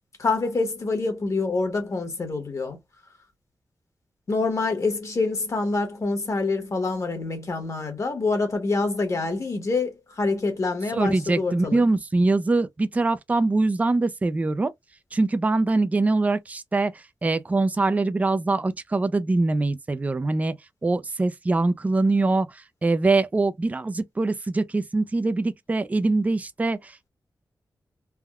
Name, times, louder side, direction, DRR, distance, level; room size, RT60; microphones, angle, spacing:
voice 1, 0.2-2.8 4.3-11.8, left 3 dB, 50° left, 1.2 m, -26 dB
voice 2, 10.9-14.7 15.1-16.9 17.2-20.5 20.8-27.1, right 3 dB, 20° right, 0.3 m, -23 dB
3.4 x 2.2 x 2.3 m
wide cardioid pair, 105°, 7 cm